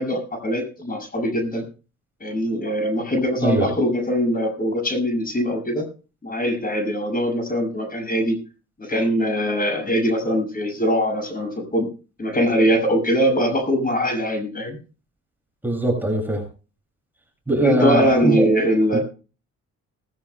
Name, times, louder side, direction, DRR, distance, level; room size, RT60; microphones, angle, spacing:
voice 1, 0.0-1.6 2.2-5.9 6.2-8.4 8.8-11.9 12.2-14.8 17.6-19.0, equal, 30° left, 4 dB, 6.8 m, -22 dB
voice 2, 15.6-16.4 17.5-18.4 18.9-19.0, right 1 dB, 5° right, 1 dB, 7.5 m, -21 dB
20.0 x 15.5 x 2.3 m, 0.35 s
cardioid pair, 90°, 30 cm